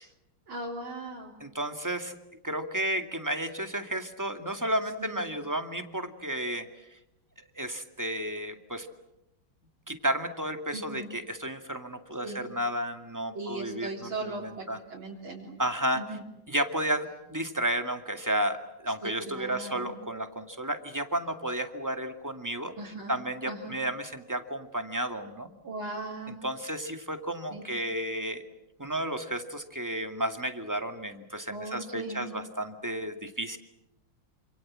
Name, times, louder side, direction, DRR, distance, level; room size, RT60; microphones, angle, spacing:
voice 1, 0.5-1.3 5.0-5.2 10.7-11.1 12.2-12.4 13.3-15.5 15.9-16.2 19.0-19.9 22.8-23.1 23.5-23.7 25.6-26.4 27.5-27.6 31.5-32.3, right 2 dB, 80° right, -4 dB, 4.4 m, -38 dB
voice 2, 1.4-2.2 2.4-7.0 7.6-8.9 9.9-13.9 14.2-14.8 15.6-16.0 16.5-22.7 23.1-25.5 26.4-28.4 28.8-33.6, right 1 dB, 10° right, 7 dB, 2.1 m, -32 dB
28.0 x 27.0 x 7.6 m, 0.87 s
omnidirectional pair, 2.2 m